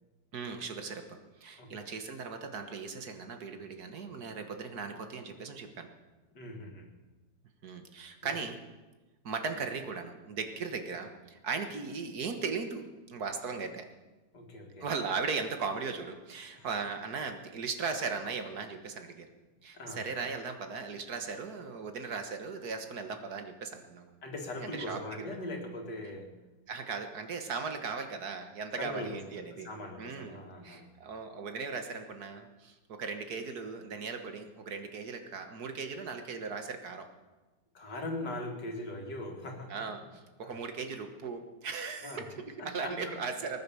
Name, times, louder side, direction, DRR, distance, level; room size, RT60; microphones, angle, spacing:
voice 1, 0.3-1.0 1.4-5.9 7.6-8.6 9.2-13.8 14.8-19.3 19.6-24.2 24.6-25.3 26.7-29.7 30.0-30.4 30.6-37.1 39.7-43.6, right 5 dB, 65° right, 6 dB, 1.9 m, -38 dB
voice 2, 1.6-1.9 6.3-6.9 8.2-8.4 14.3-14.9 16.5-16.7 19.7-20.0 24.2-26.4 28.8-30.9 37.7-39.9 40.4-40.6 42.0-42.2 42.6-43.1, left 1 dB, 75° left, 2 dB, 2.8 m, -41 dB
19.5 x 9.9 x 7.0 m, 1.2 s
omnidirectional pair, 1.8 m